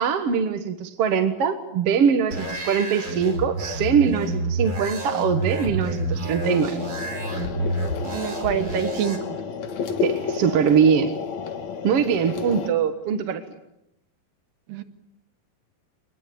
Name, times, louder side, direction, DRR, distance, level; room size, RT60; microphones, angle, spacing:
voice 1, 0.0-6.7 10.0-11.1 11.8-13.4, right 7 dB, 55° right, 7 dB, 1.8 m, -22 dB
sound 1, 2.3-9.2, right 2 dB, 25° right, 4.6 m, -29 dB
sound 2, 6.4-12.7, left 6 dB, 55° left, 2.9 m, -31 dB
voice 2, 8.1-9.4 14.7-14.8, right 8 dB, 70° right, 7 dB, 3.3 m, -26 dB
25.0 x 20.5 x 8.7 m, 0.83 s
omnidirectional pair, 4.3 m